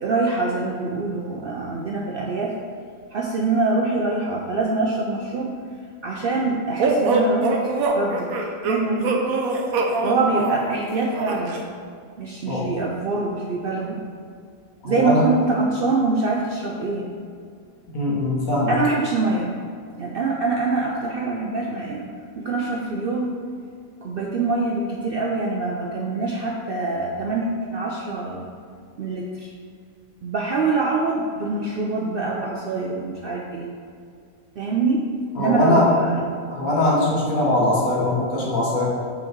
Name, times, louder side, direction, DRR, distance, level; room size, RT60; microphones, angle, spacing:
voice 1, 0.0-2.5 3.1-5.5 6.0-7.6 7.9-8.3 8.6-9.2 10.0-11.6 12.2-14.0 14.8-17.1 18.7-19.5 20.0-22.1 22.4-23.4 24.0-28.5 29.0-29.5 30.2-33.7 34.6-35.1 35.4-36.2, right 3 dB, 65° right, -1 dB, 0.6 m, -24 dB
sound 1, 6.8-11.6, right 3 dB, 80° right, 1.2 m, -23 dB
voice 2, 14.8-15.2 17.9-18.8 35.4-35.9 36.5-38.9, left 1 dB, 75° left, -5 dB, 1.9 m, -21 dB
5.7 x 4.0 x 4.5 m, 2.2 s
omnidirectional pair, 1.5 m